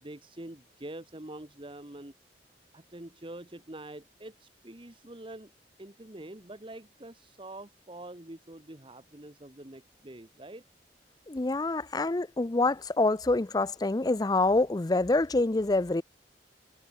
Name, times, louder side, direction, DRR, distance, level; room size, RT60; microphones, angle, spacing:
voice 1, 0.0-2.1 2.7-5.5 5.8-10.6, right 1 dB, 30° right, 1.5 m, -45 dB
voice 2, 11.3-16.0, left 2 dB, 20° left, 0.5 m, -26 dB
head